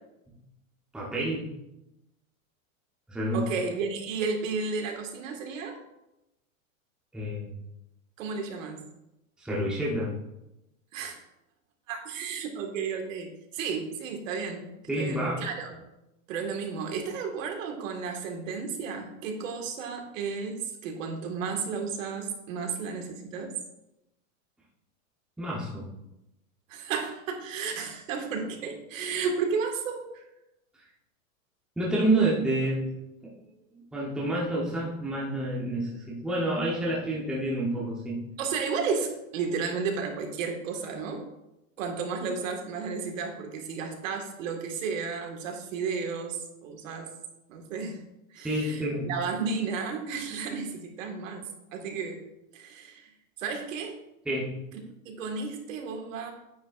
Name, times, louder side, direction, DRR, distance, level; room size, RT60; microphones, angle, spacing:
voice 1, 0.9-1.5 3.1-3.5 7.1-7.5 9.4-10.1 14.9-15.4 25.4-25.9 31.8-32.9 33.2-33.3 33.9-38.2 48.4-49.1 54.2-54.5, right 1 dB, ahead, -5 dB, 1.0 m, -28 dB
voice 2, 3.3-5.8 8.2-8.8 10.9-11.2 11.9-14.7 15.0-15.8 16.3-23.6 26.7-30.2 38.4-41.3 41.8-47.1 47.5-48.0 48.3-51.4 51.7-52.2 52.5-53.1 53.4-54.0 55.1-56.3, right 5 dB, 65° right, 3 dB, 1.9 m, -33 dB
9.4 x 9.3 x 2.5 m, 0.90 s
supercardioid pair, 170°, 41 cm